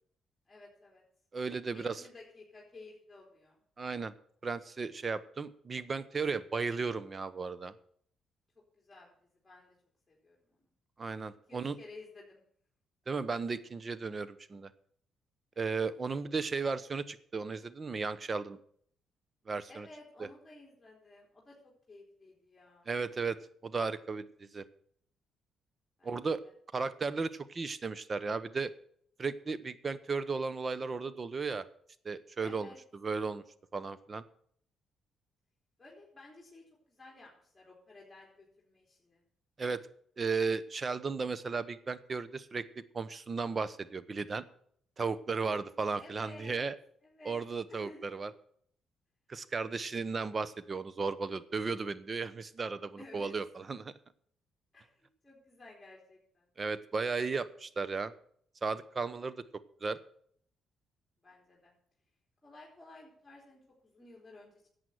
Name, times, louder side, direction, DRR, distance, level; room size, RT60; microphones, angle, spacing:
voice 1, 0.5-1.0 1.7-3.6 8.7-9.8 10.1-10.7 11.5-12.4 19.7-22.9 26.0-26.5 32.4-32.8 35.8-39.2 46.0-46.7 47.0-48.1 53.0-53.3 54.7-56.5 57.3-57.5 61.2-61.7 62.4-64.7, left 2 dB, 15° left, -3 dB, 3.8 m, -54 dB
voice 2, 1.3-2.0 3.8-4.1 4.4-7.7 11.0-11.8 13.1-14.7 15.6-18.6 19.5-19.9 22.9-24.6 26.0-26.4 26.7-28.7 29.2-31.7 32.0-33.4 33.7-34.2 39.6-39.8 40.2-42.6 42.9-44.4 45.0-46.7 47.2-48.3 49.3-53.9 56.6-58.1 58.6-59.4 59.8-60.0, right 4 dB, 35° right, 15 dB, 0.9 m, -35 dB
11.0 x 8.1 x 7.9 m, 0.62 s
cardioid pair, 90°, 0 cm